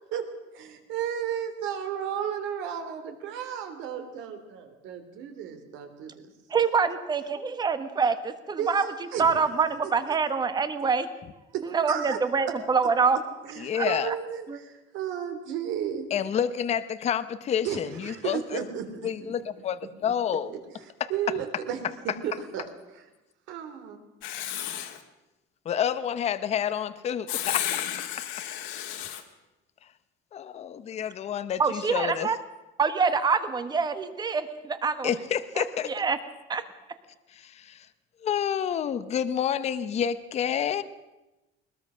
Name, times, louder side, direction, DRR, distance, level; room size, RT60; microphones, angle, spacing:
voice 1, 0.5-6.1 8.6-9.4 11.9-12.2 12.5-12.6 13.4-16.1 17.6-19.4 20.5-20.6 21.1-21.8 22.2-22.6 22.9-23.0 23.5-24.0, right 9 dB, 65° right, 7 dB, 3.3 m, -33 dB
voice 2, 6.5-8.9 9.2-11.1 11.6-13.2 13.7-14.1 14.5-14.6 31.6-32.4 32.8-35.1 35.6-36.2 36.5-36.6, right 5 dB, 20° right, 11 dB, 1.3 m, -25 dB
voice 3, 13.6-14.1 16.1-18.6 19.0-20.5 21.0-21.1 25.6-27.8 28.2-28.3 30.3-32.3 35.0-35.9 37.3-37.9 38.2-40.8, left 8 dB, 30° left, 12 dB, 0.8 m, -29 dB
Writing, 24.2-25.0 27.3-29.2, left 11 dB, 65° left, 2.2 m, -32 dB
21.0 x 21.0 x 6.3 m, 1.0 s
cardioid pair, 175°, 21 cm